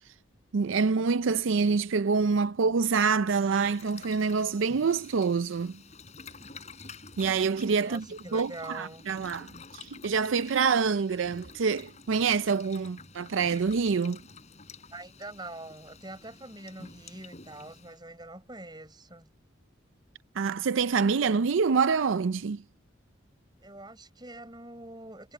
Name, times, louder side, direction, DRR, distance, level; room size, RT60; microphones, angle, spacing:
voice 1, 0.5-5.7 7.2-8.0 8.3-14.2 20.4-22.6, right 5 dB, 75° right, 0.5 m, -26 dB
Boiling, 3.4-18.0, left 4 dB, 35° left, 4.9 m, -50 dB
voice 2, 7.8-9.1 14.9-19.3 23.6-25.3, right 2 dB, 20° right, 6.2 m, -44 dB
head